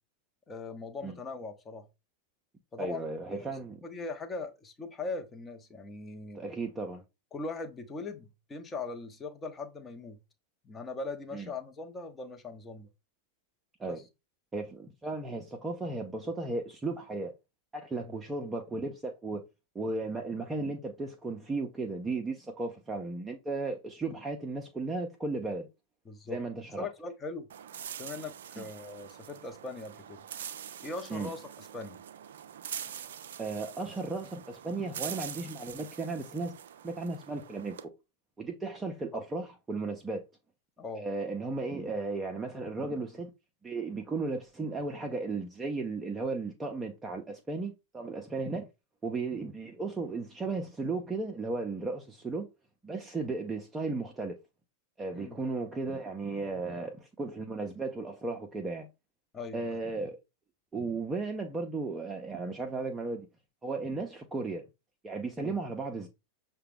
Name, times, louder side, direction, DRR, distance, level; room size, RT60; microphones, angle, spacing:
voice 1, 0.5-1.9 2.7-3.6 3.8-6.4 7.3-10.2 10.6-12.9 13.9-14.0 18.0-18.2 26.1-26.4 26.8-27.5 28.0-30.2 30.8-32.0 39.1-39.2 40.8-41.1 55.1-55.4 59.3-59.8 65.4-65.6, left 3 dB, 20° left, 0.8 m, -40 dB
voice 2, 2.8-3.8 6.3-7.0 11.3-11.5 13.8-14.0 14.5-17.3 17.7-19.5 19.7-25.7 26.3-26.9 28.6-28.7 31.1-31.3 33.4-36.5 36.8-37.9 38.4-40.2 41.0-43.3 43.6-48.7 49.0-52.5 52.8-54.4 55.0-58.9 59.5-60.2 60.7-63.3 63.6-64.7 65.0-66.1, right 3 dB, 15° right, 0.6 m, -35 dB
sound 1, 27.5-37.8, right 9 dB, 60° right, 0.4 m, -44 dB
6.5 x 2.2 x 3.5 m
figure-of-eight pair, 90°, 0 cm